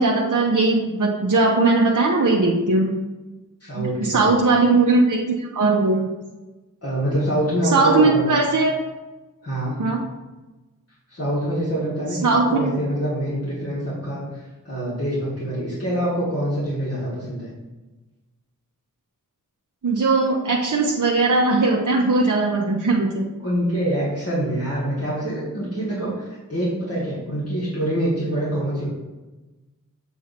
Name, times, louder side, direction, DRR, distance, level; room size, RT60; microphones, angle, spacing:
voice 1, 0.0-2.9 3.7-6.1 7.6-8.7 9.8-10.0 12.2-12.5 19.8-23.2, right 3 dB, 65° right, -2 dB, 0.8 m, -19 dB
voice 2, 3.6-4.4 6.8-8.4 9.4-9.8 11.1-17.5 23.4-28.9, right 1 dB, 45° left, -9 dB, 2.0 m, -25 dB
7.4 x 2.7 x 5.8 m, 1.1 s
wide cardioid pair, 50°, 33 cm